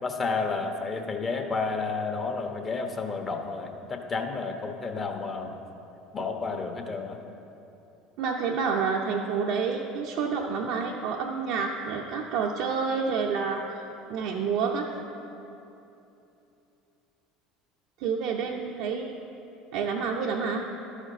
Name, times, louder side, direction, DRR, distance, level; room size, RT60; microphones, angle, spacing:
voice 1, 0.0-5.5 6.1-7.2, left 4 dB, 30° left, 4 dB, 1.2 m, -31 dB
voice 2, 8.2-13.8 14.1-14.9 18.0-19.1 19.7-20.7, right 5 dB, 65° right, 0 dB, 0.6 m, -28 dB
12.0 x 5.0 x 6.4 m, 2.9 s
hypercardioid pair, 80°, 0 cm